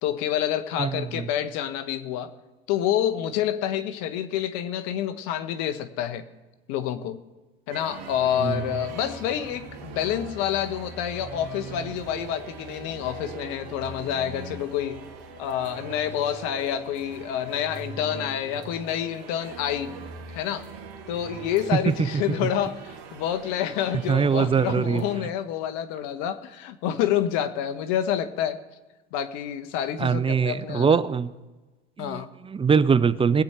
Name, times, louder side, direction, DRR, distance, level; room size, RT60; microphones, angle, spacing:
voice 1, 0.0-2.3 2.7-6.3 6.7-7.2 7.7-15.0 15.4-20.0 20.3-20.7 21.1-28.6 29.1-31.0 32.0-32.3, left 10 dB, 60° left, 11 dB, 1.3 m, -28 dB
voice 2, 0.8-1.3 8.4-8.6 22.0-22.1 24.1-25.0 30.0-31.3 32.0-33.4, right 6 dB, 20° right, 16 dB, 0.6 m, -22 dB
sound 1, 7.7-25.2, right 5 dB, 60° right, 2.2 m, -41 dB
21.5 x 8.1 x 4.5 m, 1.2 s
hypercardioid pair, 85°, 30 cm